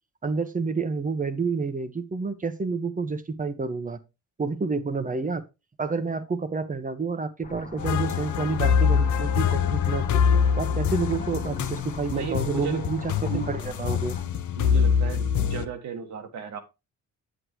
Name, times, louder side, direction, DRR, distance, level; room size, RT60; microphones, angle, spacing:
voice 1, 0.2-4.0 4.4-5.4 5.8-10.2 10.6-14.2, right 4 dB, 25° right, 1.2 m, -29 dB
sound 1, 7.4-14.2, left 3 dB, 25° left, 1.2 m, -42 dB
sound 2, 7.8-15.7, left 7 dB, 75° left, 0.8 m, -24 dB
voice 2, 12.1-12.9 13.3-13.5 14.5-16.6, right 7 dB, 65° right, 1.8 m, -34 dB
8.3 x 7.8 x 3.1 m
cardioid pair, 90°, 30 cm